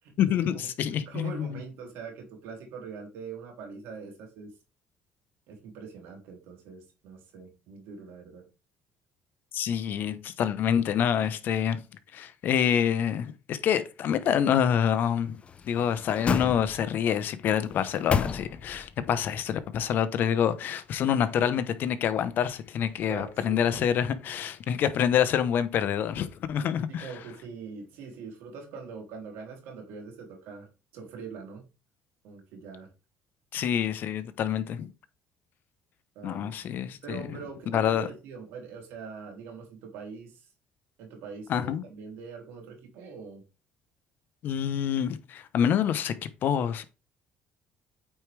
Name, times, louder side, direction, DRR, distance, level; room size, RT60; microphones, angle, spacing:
voice 1, 0.2-1.6 9.5-11.8 12.1-15.4 15.7-27.1 33.5-34.9 36.2-37.2 37.7-38.1 41.5-41.8 44.4-46.1 46.4-46.8, left 9 dB, 60° left, 0.9 m, -27 dB
voice 2, 1.0-4.5 5.5-8.5 23.1-23.8 26.9-31.6 32.2-32.9 36.1-36.7 37.0-40.5 41.0-43.4, right 5 dB, 80° right, 3.2 m, -43 dB
sound 1, 15.4-17.1 17.6-18.9 19.3-19.4, left 6 dB, 30° left, 0.7 m, -31 dB
8.8 x 4.7 x 3.4 m
cardioid pair, 115°, 4 cm